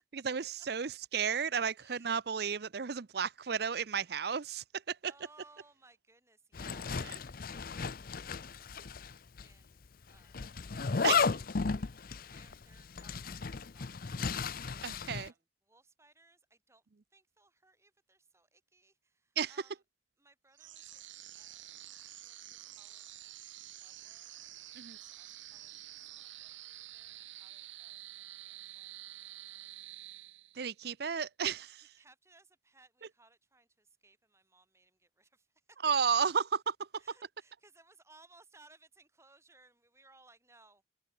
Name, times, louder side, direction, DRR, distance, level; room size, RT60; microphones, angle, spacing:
voice 1, 0.3-5.1 11.0-11.3 14.8-15.3 19.4-19.5 24.8-25.0 30.6-31.8 35.8-36.7, right 6 dB, 55° right, 0.6 m, -33 dB
voice 2, 1.7-2.2 4.0-4.3 5.0-10.5 11.0-14.8 15.1-16.8 17.1-19.8 20.2-23.5 23.8-24.3 24.6-29.8 31.8-35.9 36.9-40.8, right 3 dB, 15° right, 7.6 m, -65 dB
Zipper (clothing), 6.5-9.1 9.4-9.5 10.3-15.3, left 5 dB, 50° left, 0.6 m, -34 dB
sound 1, 20.5-30.8, right 14 dB, 85° right, 4.8 m, -49 dB
head